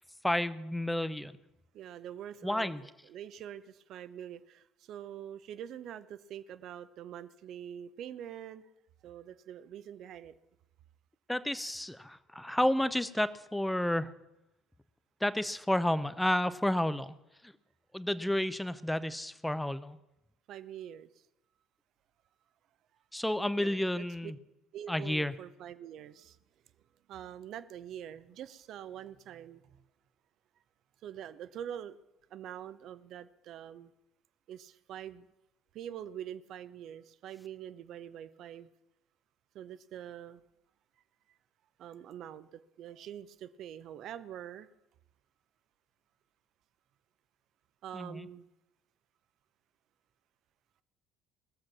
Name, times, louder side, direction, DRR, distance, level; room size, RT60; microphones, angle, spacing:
voice 1, 0.2-1.4 2.4-2.8 11.3-14.1 15.2-17.1 17.4-17.5 17.9-20.0 23.1-24.4 24.9-25.3 47.9-48.3, left 1 dB, 5° left, 15 dB, 0.7 m, -31 dB
voice 2, 1.7-8.6 9.0-10.3 20.5-21.2 23.5-24.3 24.7-26.4 27.1-29.8 31.0-32.0 32.3-33.9 34.5-35.3 35.7-38.7 39.5-40.4 41.8-44.7 47.8-48.5, right 10 dB, 55° right, 15 dB, 0.6 m, -45 dB
20.0 x 7.5 x 6.0 m, 0.91 s
figure-of-eight pair, 55°, 0 cm